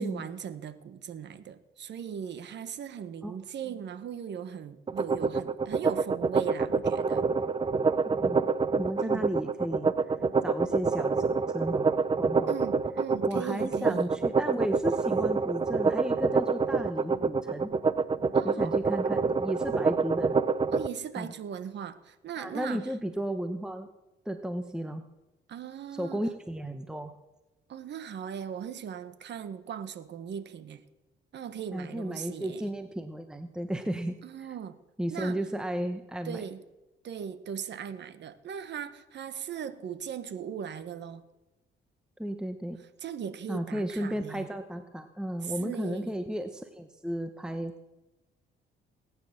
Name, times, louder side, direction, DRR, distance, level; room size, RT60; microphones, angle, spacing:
voice 1, 0.0-7.2 9.0-9.2 12.5-14.1 18.3-18.8 20.7-22.8 25.5-26.2 27.7-30.8 31.3-32.7 34.2-34.8 35.1-35.4 36.2-36.6 37.0-41.2 43.0-44.5 45.4-46.1, right 8 dB, 65° right, 1.3 m, -39 dB
sound 1, 4.9-20.9, right 4 dB, 25° right, 0.6 m, -26 dB
voice 2, 8.0-11.2 11.5-12.5 13.3-17.7 18.4-20.3 21.2-21.3 22.4-23.9 24.2-25.0 25.9-27.1 31.7-34.5 35.0-36.4 42.2-42.8 43.5-47.9, right 1 dB, 5° right, 1.0 m, -34 dB
19.0 x 9.7 x 6.7 m
cardioid pair, 90°, 20 cm